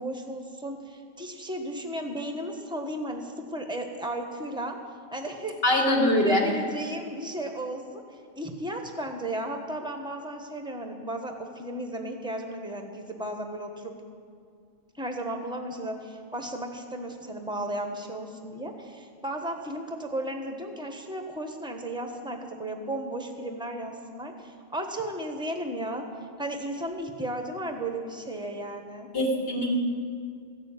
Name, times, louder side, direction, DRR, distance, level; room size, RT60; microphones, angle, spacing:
voice 1, 0.0-4.8 5.1-5.9 6.2-13.9 14.9-26.0 26.4-29.1, right 1 dB, 5° right, 4 dB, 1.0 m, -34 dB
voice 2, 5.6-6.4 29.1-29.8, left 1 dB, 50° left, 0 dB, 2.0 m, -23 dB
14.5 x 6.7 x 8.8 m, 2.2 s
omnidirectional pair, 1.3 m